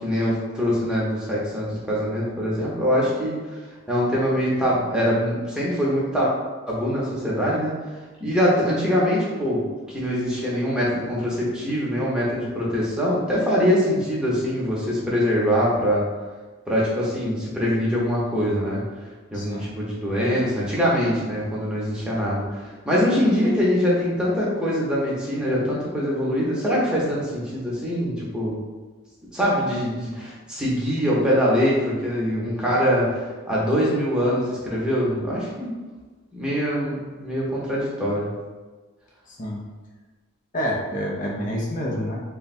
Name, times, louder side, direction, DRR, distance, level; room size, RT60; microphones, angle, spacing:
voice 1, 0.0-3.4 3.9-6.3 6.7-7.7 8.2-9.6 9.9-16.0 16.7-18.8 19.3-28.6 29.3-35.7 36.3-38.3, equal, 5° right, -6 dB, 0.8 m, -23 dB
voice 2, 19.3-19.7 39.3-39.6 40.5-42.2, equal, 40° left, -2 dB, 0.6 m, -28 dB
3.4 x 2.2 x 4.1 m, 1.3 s
head